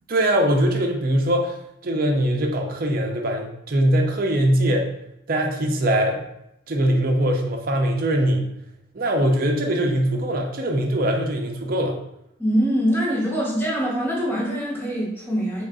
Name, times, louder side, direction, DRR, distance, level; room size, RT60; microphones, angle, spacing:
voice 1, 0.1-1.6 1.8-4.9 5.3-6.2 6.7-8.5 8.9-12.0, right 1 dB, 45° right, 2 dB, 0.5 m, -21 dB
voice 2, 12.4-15.6, equal, 10° left, -6 dB, 1.1 m, -23 dB
3.7 x 2.3 x 3.7 m, 0.82 s
head